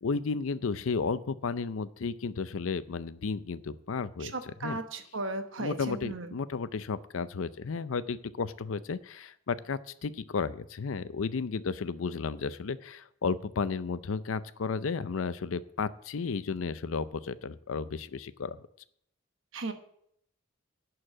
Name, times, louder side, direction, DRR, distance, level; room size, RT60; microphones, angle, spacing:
voice 1, 0.0-4.3 4.6-4.8 5.6-18.6, left 5 dB, 80° left, 15 dB, 0.5 m, -33 dB
voice 2, 4.2-6.3 19.5-19.7, right 2 dB, 70° right, 7 dB, 1.1 m, -36 dB
11.0 x 4.7 x 7.4 m, 0.70 s
head